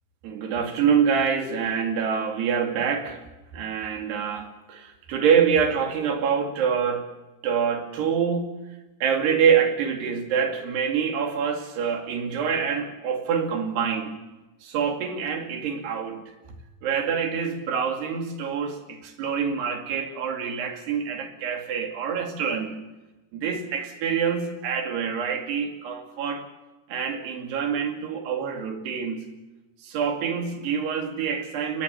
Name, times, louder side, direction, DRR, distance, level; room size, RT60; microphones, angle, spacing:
voice 1, 0.2-3.2 3.5-7.1 7.4-8.5 9.0-14.2 14.6-16.3 16.8-22.8 23.3-26.5 26.9-29.3 29.8-31.8, right 7 dB, 80° right, 5 dB, 4.6 m, -26 dB
23.0 x 20.5 x 7.1 m, 1.1 s
omnidirectional pair, 4.7 m